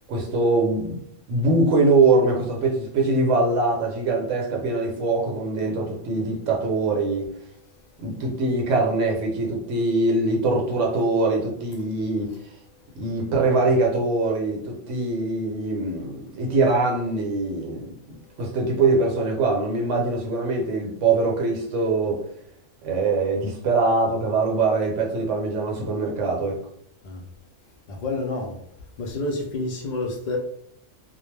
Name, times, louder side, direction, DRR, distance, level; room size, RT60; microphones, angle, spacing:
voice 1, 0.1-1.0 1.3-7.3 8.0-12.3 13.0-22.2 22.8-26.6, right 3 dB, 70° right, 1.0 m, -23 dB
voice 2, 27.9-28.6 29.0-30.4, left 2 dB, 80° left, 0.4 m, -29 dB
2.2 x 2.1 x 3.1 m
omnidirectional pair, 1.3 m